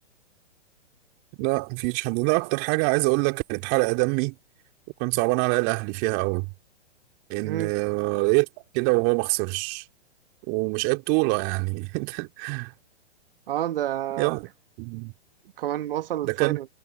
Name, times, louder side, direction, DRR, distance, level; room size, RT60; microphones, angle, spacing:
voice 1, 1.4-4.3 5.0-6.5 7.3-8.5 8.7-9.8 10.5-12.7 14.2-14.5 14.8-15.1 16.2-16.6, right 31 dB, 35° right, 3.0 m, -25 dB
voice 2, 13.5-14.4 15.6-16.7, right 12 dB, 55° right, 1.6 m, -29 dB
hypercardioid pair, 125°, 34 cm